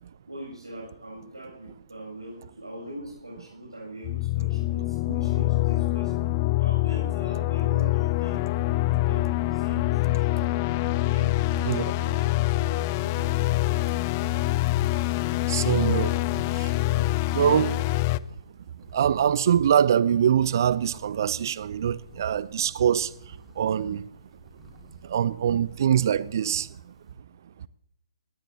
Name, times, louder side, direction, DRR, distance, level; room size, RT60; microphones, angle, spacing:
voice 1, 0.3-6.1 6.6-10.4 11.0-11.3 11.9-14.1 15.5-15.6 16.6-17.1, right 1 dB, 80° right, 7.5 m, -42 dB
sound 1, 4.0-18.2, left 17 dB, 25° left, 0.4 m, -25 dB
sound 2, 7.8-27.1, left 2 dB, ahead, 5.4 m, -54 dB
voice 2, 15.5-16.2 16.5-16.7 17.3-17.8 18.9-24.0 25.0-26.9, right 9 dB, 45° right, 0.6 m, -24 dB
20.5 x 19.0 x 2.8 m
figure-of-eight pair, 135°, 3 cm